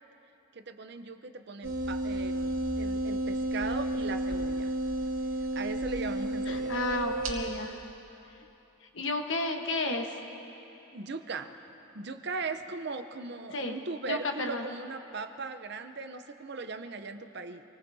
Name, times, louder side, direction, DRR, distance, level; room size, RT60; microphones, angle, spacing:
voice 1, 0.5-4.7 5.4-7.1 10.9-11.7 11.9-17.6, right 3 dB, 50° right, 8 dB, 0.7 m, -39 dB
sound 1, 1.6-7.3, right 1 dB, 75° right, 2.0 m, -32 dB
voice 2, 6.5-7.8 8.9-10.2 13.5-13.8 14.1-14.7, left 2 dB, 60° left, 4 dB, 1.2 m, -32 dB
27.0 x 19.0 x 2.7 m, 3.0 s
head